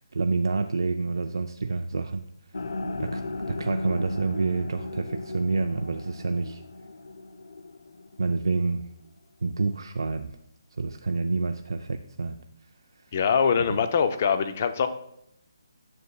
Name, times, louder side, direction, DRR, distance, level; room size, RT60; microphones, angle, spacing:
voice 1, 0.1-2.3 3.0-3.2 3.5-6.6 8.2-8.9 9.4-10.3 10.8-12.4 13.7-13.8, right 3 dB, 85° right, 6 dB, 0.4 m, -28 dB
sound 1, 2.5-8.7, left 2 dB, 85° left, 0.5 m, -36 dB
voice 2, 13.1-14.9, left 6 dB, 25° left, 10 dB, 0.4 m, -23 dB
9.6 x 6.4 x 2.3 m, 0.78 s
hypercardioid pair, 175°, 2 cm